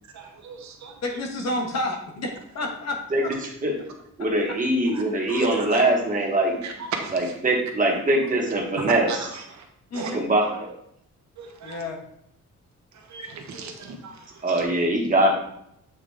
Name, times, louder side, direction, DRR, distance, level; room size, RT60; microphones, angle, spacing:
voice 1, 0.1-0.9 4.9-5.0 5.3-5.4 6.6-6.7 7.0-7.1 9.1-9.2 9.9-10.1 11.4-11.8 13.1-14.2, right 5 dB, 70° right, 4 dB, 1.1 m, -37 dB
voice 2, 1.0-3.3 9.9-10.2 11.6-12.0, left 2 dB, 60° left, 2 dB, 1.2 m, -30 dB
voice 3, 3.1-3.7 4.2-6.6 7.1-9.3 10.1-10.7 14.4-15.3, right 1 dB, 25° right, 0 dB, 1.2 m, -22 dB
8.0 x 3.7 x 3.5 m, 0.73 s
wide cardioid pair, 175°, 30 cm